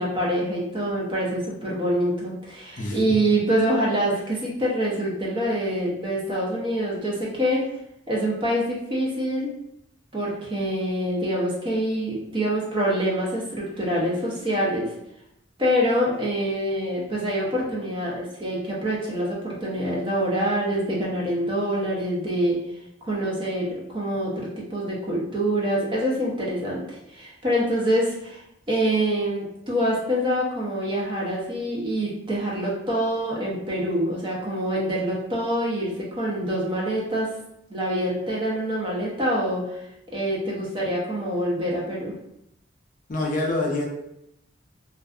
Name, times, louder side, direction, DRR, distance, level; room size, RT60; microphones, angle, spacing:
voice 1, 0.0-7.6 8.1-9.5 10.1-14.9 15.6-22.6 23.0-37.3 37.7-39.8 40.1-42.1, equal, 25° right, -5 dB, 0.6 m, -25 dB
voice 2, 43.1-43.8, left 2 dB, 45° left, -1 dB, 0.4 m, -25 dB
2.5 x 2.3 x 2.3 m, 0.81 s
head